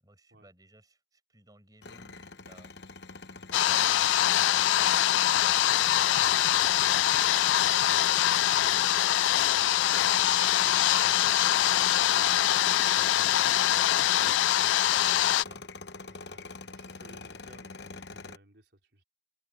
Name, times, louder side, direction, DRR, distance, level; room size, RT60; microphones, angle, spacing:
voice 1, 0.0-5.1 5.7-7.0 7.3-9.8 10.4-13.8 14.7-15.7 16.1-16.7, right 1 dB, 20° right, 6.3 m, -59 dB
sound 1, 1.8-18.4, left 3 dB, 65° left, 1.0 m, -44 dB
sound 2, 3.5-15.4, left 12 dB, 85° left, 0.3 m, -24 dB
voice 2, 16.0-19.0, right 1 dB, 65° right, 4.9 m, -58 dB
open air
head